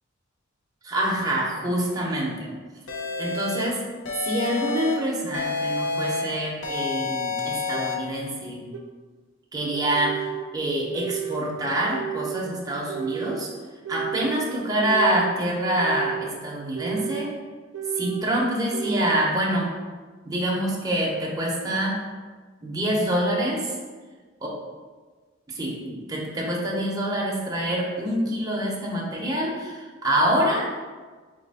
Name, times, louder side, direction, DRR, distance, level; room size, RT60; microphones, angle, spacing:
voice 1, 0.8-2.5 3.2-3.8 4.2-8.7 9.5-10.2 10.5-13.5 13.9-17.3 18.0-19.7 20.2-22.0 22.6-23.7 24.4-24.5 25.5-30.7, right 1 dB, 20° right, -4 dB, 0.8 m, -26 dB
sound 1, 2.9-3.7 4.1-4.9 5.3-6.2 6.6-7.9, left 4 dB, 65° left, 0.7 m, -28 dB
sound 2, 7.7-7.8 8.7-8.8 9.7-10.5 10.9-11.5 11.9-12.5 12.9-13.4 13.8-14.4 14.8-15.4 15.8-16.3 16.7-17.3 17.7-18.3 18.7-19.3, right 10 dB, 85° right, 0.5 m, -32 dB
4.2 x 2.9 x 4.1 m, 1.4 s
head